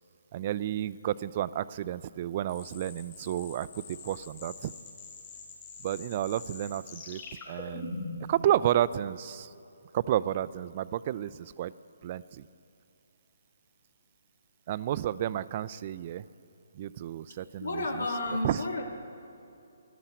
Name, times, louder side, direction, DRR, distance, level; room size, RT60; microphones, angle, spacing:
voice 1, 0.3-4.7 5.8-8.0 8.3-9.5 9.9-11.7 12.0-12.5 14.7-16.2 16.7-17.8 18.4-18.6, right 12 dB, 40° right, 17 dB, 0.4 m, -31 dB
sound 1, 2.5-8.3, left 4 dB, 35° left, 3.9 m, -43 dB
voice 2, 17.6-18.8, left 2 dB, 80° left, 2 dB, 2.3 m, -31 dB
13.5 x 11.5 x 8.2 m, 2.7 s
figure-of-eight pair, 145°, 0 cm